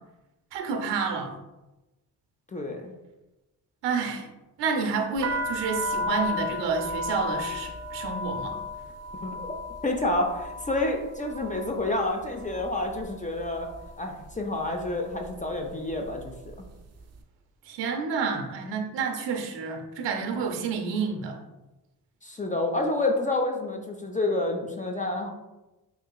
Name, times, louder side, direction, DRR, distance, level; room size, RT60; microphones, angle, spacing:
voice 1, 0.5-1.4 3.8-4.3 4.6-8.6 17.7-21.4, right 5 dB, 80° right, 3 dB, 0.7 m, -29 dB
voice 2, 2.5-2.9 9.2-9.5 9.8-13.7 14.0-16.7 22.2-25.3, left 2 dB, 20° left, 2 dB, 0.4 m, -29 dB
sound 1, 5.2-13.1 13.4-14.0 14.7-14.9 15.2-16.7, left 2 dB, 40° right, 0.5 m, -34 dB
3.8 x 2.9 x 2.3 m, 1.0 s
supercardioid pair, 60°, 42 cm